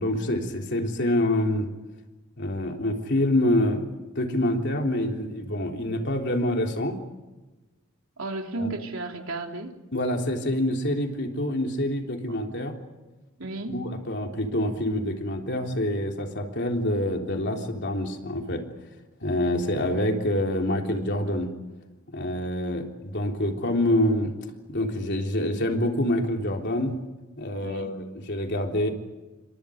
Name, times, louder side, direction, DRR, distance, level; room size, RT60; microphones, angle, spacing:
voice 1, 0.0-1.7 2.4-3.9 4.2-7.0 8.6-8.7 9.9-12.8 13.7-18.6 19.2-21.5 22.1-24.3 24.7-27.0 27.4-28.9, left 1 dB, 55° left, 2 dB, 3.6 m, -26 dB
voice 2, 8.2-9.8 13.4-13.8 27.6-27.9, right 2 dB, 70° right, 3 dB, 3.3 m, -33 dB
29.5 x 25.5 x 5.2 m, 1.1 s
head